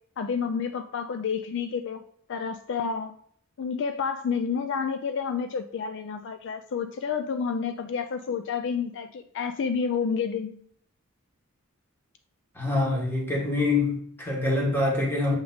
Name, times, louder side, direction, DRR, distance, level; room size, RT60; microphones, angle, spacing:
voice 1, 0.2-2.0 2.3-3.2 3.6-10.6, left 6 dB, 60° left, 0.4 m, -29 dB
voice 2, 12.5-15.3, left 2 dB, 10° left, 1.5 m, -25 dB
7.1 x 3.4 x 3.9 m
head